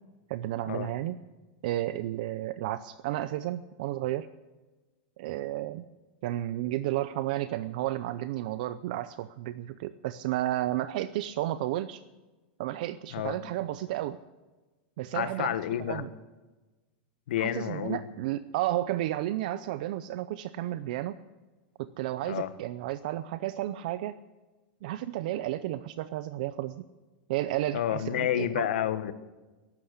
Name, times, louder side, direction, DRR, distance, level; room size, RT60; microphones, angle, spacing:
voice 1, 0.3-1.2 1.6-4.3 5.2-5.8 6.2-12.0 12.6-14.2 15.0-16.1 17.4-21.2 21.8-24.2 24.8-26.8 27.3-28.7, right 14 dB, 50° right, 14 dB, 0.5 m, -32 dB
voice 2, 15.1-16.0 17.3-18.0 22.2-22.5 27.7-29.1, left 11 dB, 80° left, 12 dB, 1.3 m, -30 dB
14.5 x 12.0 x 8.2 m, 1.2 s
supercardioid pair, 170°, 6 cm